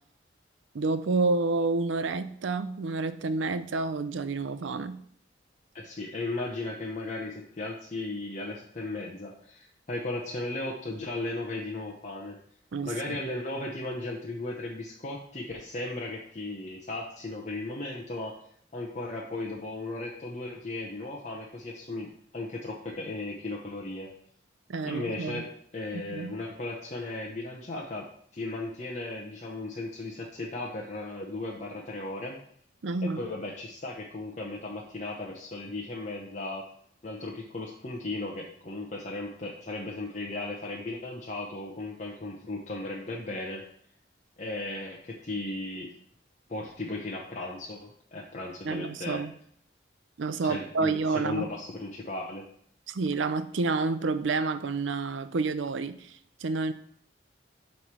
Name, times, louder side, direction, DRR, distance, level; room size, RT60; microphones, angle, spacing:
voice 1, 0.7-5.0 12.7-13.2 24.7-25.4 25.9-26.3 32.8-33.2 48.6-49.3 50.2-51.5 52.9-56.7, right 3 dB, 75° right, 12 dB, 0.5 m, -29 dB
voice 2, 5.7-12.4 12.8-18.4 18.7-24.1 24.8-28.1 28.3-32.4 33.0-36.7 37.0-43.6 44.4-45.9 46.5-49.2 50.4-52.5, left 2 dB, 35° left, -2 dB, 0.8 m, -36 dB
7.7 x 3.3 x 5.9 m, 0.65 s
head